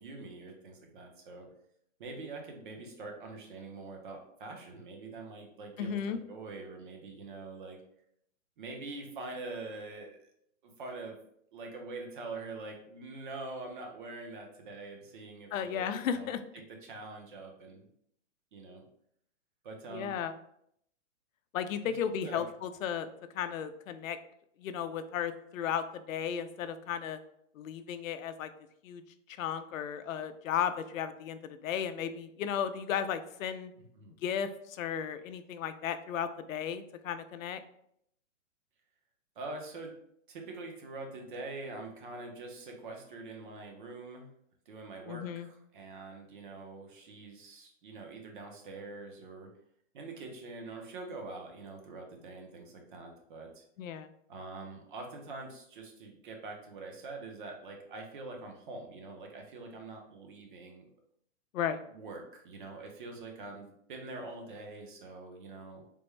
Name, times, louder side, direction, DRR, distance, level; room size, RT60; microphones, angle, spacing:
voice 1, 0.0-1.5 2.0-7.8 8.6-10.2 10.6-11.2 11.5-17.9 18.5-18.8 19.6-20.2 21.8-22.5 34.0-34.1 39.4-39.9 40.3-44.3 44.7-49.5 49.9-53.6 54.3-60.9 61.9-65.8, right 3 dB, 40° right, 2 dB, 0.6 m, -44 dB
voice 2, 5.8-6.2 15.5-16.4 19.9-20.3 21.5-23.1 23.3-24.2 24.6-27.2 27.5-28.5 28.8-29.0 29.4-33.7 34.2-37.6 45.1-45.5 53.8-54.1 61.5-61.8, left 8 dB, 85° left, 11 dB, 0.5 m, -34 dB
3.4 x 2.1 x 3.1 m, 0.71 s
hypercardioid pair, 165°, 39 cm